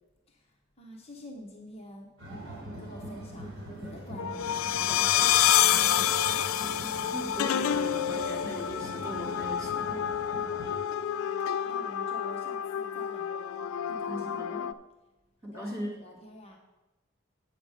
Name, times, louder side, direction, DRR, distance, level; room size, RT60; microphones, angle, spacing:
voice 1, 0.3-2.1 2.8-5.2 5.6-6.5 11.1-14.4 15.4-16.6, left 1 dB, 30° left, 0 dB, 1.0 m, -48 dB
sound 1, 2.2-10.7, right 1 dB, 60° right, 3.3 m, -42 dB
sound 2, 4.2-14.7, left 10 dB, 80° left, 0.3 m, -28 dB
voice 2, 7.1-10.2 14.1-14.7 15.4-16.2, equal, 15° right, -2 dB, 1.8 m, -39 dB
9.0 x 7.1 x 4.9 m, 1.1 s
head